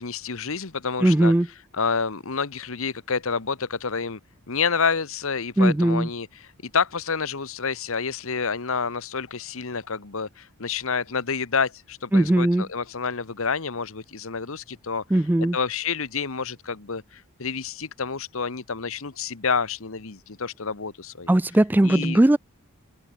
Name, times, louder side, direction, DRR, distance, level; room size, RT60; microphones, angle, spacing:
voice 1, 0.0-1.3 1.8-4.2 4.5-6.3 6.6-15.0 15.4-21.3 21.8-22.2, left 5 dB, 65° left, 1.2 m, -28 dB
voice 2, 1.0-1.5 5.6-6.1 12.1-12.7 15.1-15.6 21.3-22.4, right 1 dB, 10° right, 0.3 m, -19 dB
head